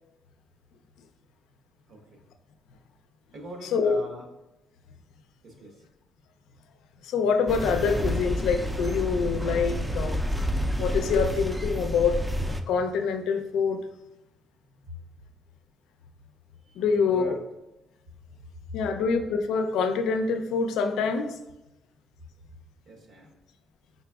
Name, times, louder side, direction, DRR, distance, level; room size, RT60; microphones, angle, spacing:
voice 1, 1.9-2.2 3.3-4.2 5.4-5.7 16.8-17.4 22.9-23.3, equal, 70° right, 1 dB, 1.1 m, -43 dB
voice 2, 3.6-4.0 7.0-10.2 10.8-12.2 12.7-13.8 16.8-17.4 18.7-21.3, left 5 dB, 85° left, 7 dB, 0.4 m, -25 dB
sound 1, 7.5-12.6, equal, 10° right, 0.4 m, -29 dB
4.9 x 4.1 x 2.3 m, 0.96 s
cardioid pair, 90°, 0 cm